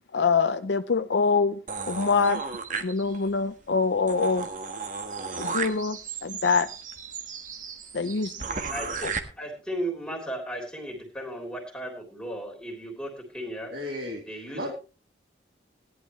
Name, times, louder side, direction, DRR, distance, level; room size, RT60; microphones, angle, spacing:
voice 1, 0.1-1.6 1.9-2.4 2.8-4.4 5.4-6.0 6.2-6.7 7.9-8.3, left 4 dB, 75° left, 9 dB, 0.6 m, -24 dB
sound 1, 1.7-3.4 3.8-3.9 4.1-9.2, right 5 dB, 45° right, 1.5 m, -34 dB
voice 2, 8.7-13.7 14.3-14.7, right 1 dB, 5° left, 0 dB, 3.4 m, -35 dB
voice 3, 13.7-14.7, left 1 dB, 65° right, -2 dB, 3.2 m, -35 dB
17.5 x 11.5 x 3.2 m, 0.34 s
head